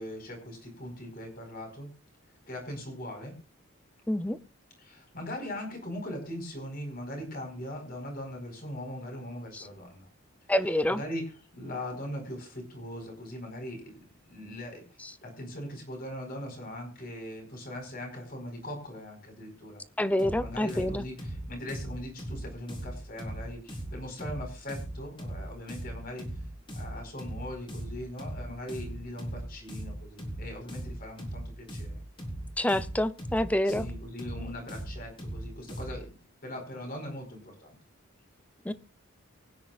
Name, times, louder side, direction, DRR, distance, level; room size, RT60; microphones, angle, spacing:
voice 1, 0.0-1.9 2.5-3.4 4.8-10.1 10.9-14.8 15.2-19.8 20.3-26.3 26.7-32.0 33.6-36.2 36.4-37.8, left 1 dB, 45° left, 4.6 m, -40 dB
voice 2, 4.1-4.4 9.5-9.7 10.5-11.0 15.0-15.1 20.0-21.1 32.6-33.9 38.6-38.7, left 1 dB, 5° left, 0.5 m, -27 dB
sound 1, 20.2-36.1, right 1 dB, 25° left, 3.6 m, -39 dB
24.0 x 9.8 x 2.4 m
head